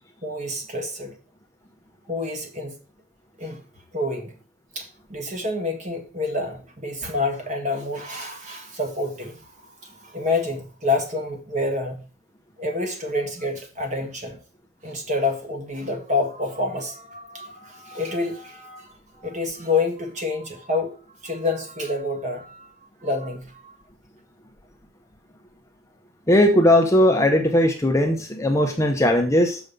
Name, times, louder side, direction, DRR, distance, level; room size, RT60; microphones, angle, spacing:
voice 1, 0.2-1.1 2.1-2.7 3.4-3.6 3.9-4.3 4.7-9.5 9.8-12.1 12.6-14.4 14.8-23.7, left 2 dB, 35° right, 1.7 m, -28 dB
voice 2, 26.3-29.6, left 1 dB, 15° left, 0.8 m, -18 dB
7.1 x 5.3 x 5.1 m
head